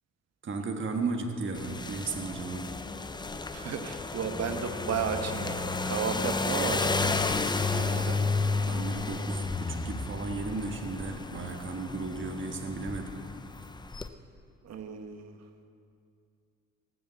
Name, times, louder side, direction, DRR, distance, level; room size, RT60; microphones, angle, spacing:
voice 1, 0.4-2.7 7.4-8.2 8.7-13.2, right 3 dB, 40° right, 3 dB, 1.4 m, -35 dB
sound 1, 1.5-14.1, left 3 dB, 15° left, 0.6 m, -32 dB
voice 2, 3.5-7.1 7.7-8.2 14.6-15.4, right 6 dB, 60° right, 6 dB, 1.3 m, -34 dB
17.5 x 6.8 x 7.9 m, 2.4 s
cardioid pair, 90°, 30 cm